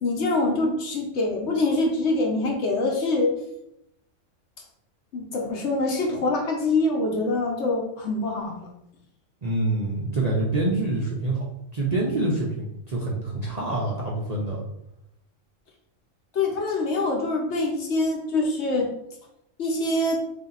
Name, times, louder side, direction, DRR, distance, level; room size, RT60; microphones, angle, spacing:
voice 1, 0.0-3.4 5.1-8.7 16.3-18.9 19.6-20.2, left 2 dB, 60° left, 1 dB, 1.1 m, -24 dB
voice 2, 9.4-11.4 11.7-14.6, right 2 dB, 45° right, -3 dB, 0.5 m, -26 dB
3.5 x 2.8 x 3.9 m, 0.79 s
omnidirectional pair, 1.3 m